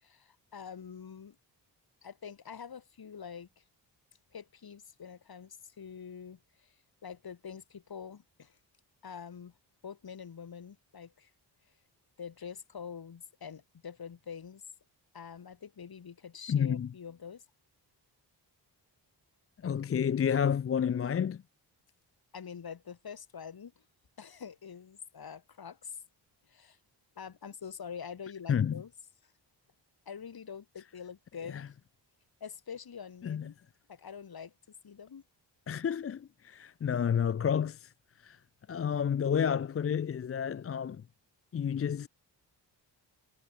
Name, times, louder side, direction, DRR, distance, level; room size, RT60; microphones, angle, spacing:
voice 1, 0.0-1.4 2.0-3.6 4.3-6.7 7.0-8.6 9.0-9.5 9.8-11.3 12.2-14.6 15.1-17.4 22.3-23.7 24.2-26.0 26.5-26.8 27.2-28.9 30.1-31.7 32.4-33.6 33.9-34.5 34.8-35.2, left 7 dB, 55° left, 5.2 m, -45 dB
voice 2, 16.5-16.9 19.6-21.4 28.5-28.8 31.5-31.7 33.2-33.5 35.7-37.9 38.2-38.4 38.7-41.0 41.5-42.1, left 8 dB, 35° left, 0.5 m, -30 dB
wide cardioid pair, 130°, 44 cm